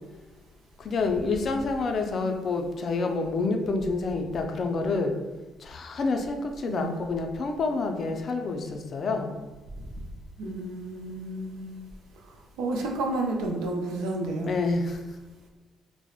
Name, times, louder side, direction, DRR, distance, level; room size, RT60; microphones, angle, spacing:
voice 1, 0.8-5.1 5.6-9.4 14.5-15.0, left 3 dB, 55° left, 4 dB, 0.3 m, -28 dB
voice 2, 10.4-11.7 12.6-14.5, right 2 dB, 85° right, 1 dB, 0.4 m, -31 dB
2.8 x 2.0 x 2.3 m, 1.2 s
supercardioid pair, 65°, 0 cm